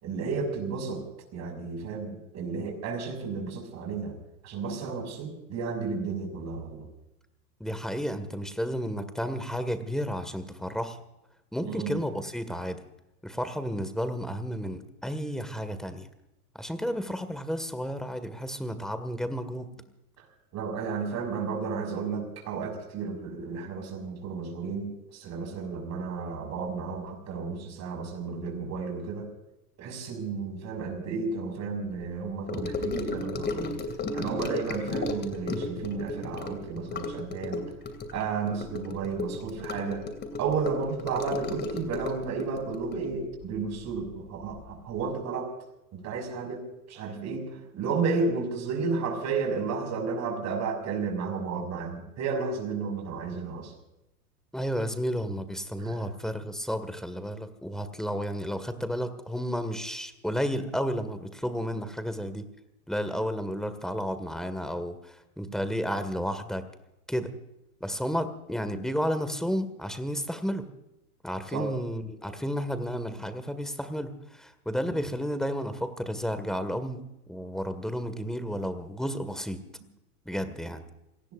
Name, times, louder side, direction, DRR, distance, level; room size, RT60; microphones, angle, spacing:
voice 1, 0.0-1.0 1.3-4.2 4.4-6.9 11.6-12.0 20.2-20.3 20.5-29.3 29.8-33.8 34.1-37.7 38.1-40.1 40.4-45.5 45.9-53.7 55.8-56.1 71.5-71.7, right 4 dB, 35° right, 4 dB, 6.2 m, -32 dB
voice 2, 7.6-11.0 11.5-12.8 13.2-16.1 16.5-19.7 54.5-62.5 62.9-66.7 67.1-67.3 67.8-70.7 71.2-77.0 77.3-79.7 80.3-80.8, equal, ahead, 11 dB, 1.9 m, -32 dB
Gurgling / Sink (filling or washing) / Trickle dribble, 32.5-44.1 44.4-44.7 45.0-45.1, left 3 dB, 25° left, 2.7 m, -34 dB
28.0 x 19.0 x 2.6 m, 0.91 s
hypercardioid pair, 110°, 45 cm